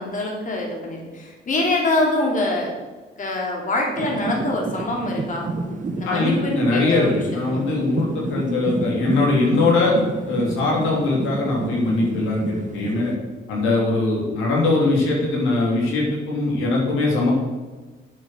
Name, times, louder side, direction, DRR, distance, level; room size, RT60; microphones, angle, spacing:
voice 1, 0.0-2.7 3.2-5.5 5.9-7.2 7.5-7.6, left 2 dB, 40° left, -1 dB, 2.8 m, -24 dB
sound 1, 4.0-13.2, right 3 dB, 40° right, 1.3 m, -30 dB
voice 2, 6.0-10.0 10.2-13.1 13.5-17.3, left 3 dB, 90° left, -3 dB, 3.3 m, -21 dB
8.6 x 7.6 x 6.4 m, 1.3 s
cardioid pair, 90°, 20 cm